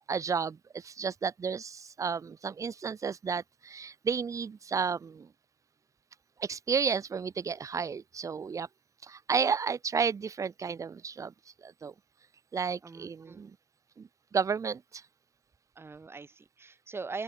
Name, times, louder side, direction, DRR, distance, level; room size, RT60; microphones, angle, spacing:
voice 1, 0.1-0.6 0.8-5.3 6.4-8.7 9.1-11.3 11.6-11.9 12.5-13.5 14.0-14.8, right 6 dB, 55° right, 2.3 m, -32 dB
voice 2, 12.8-13.5 15.7-17.2, right 4 dB, 40° right, 4.9 m, -41 dB
cardioid pair, 90°, 6 cm